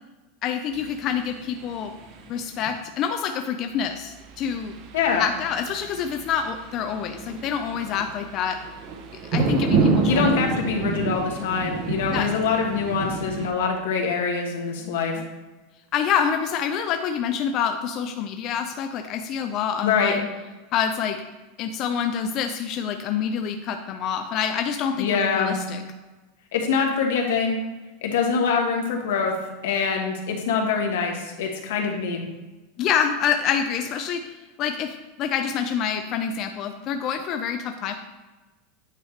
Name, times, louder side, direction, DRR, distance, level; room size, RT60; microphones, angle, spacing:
voice 1, 0.4-1.9 2.3-4.7 5.2-8.6 9.3-10.3 12.1-12.3 14.8-15.2 15.9-20.3 20.7-21.2 21.6-25.8 32.8-34.2 34.6-37.9, left 7 dB, 35° left, 6 dB, 0.3 m, -27 dB
sound 1, 0.7-2.6 4.0-13.5, right 4 dB, 40° right, 0.7 m, -29 dB
voice 2, 4.9-5.2 10.1-15.2 19.8-20.2 25.0-25.6 26.5-27.6 28.0-29.3 29.6-32.2, left 5 dB, 80° left, 2 dB, 1.3 m, -24 dB
8.9 x 4.8 x 3.2 m, 1.2 s
supercardioid pair, 170°, 0 cm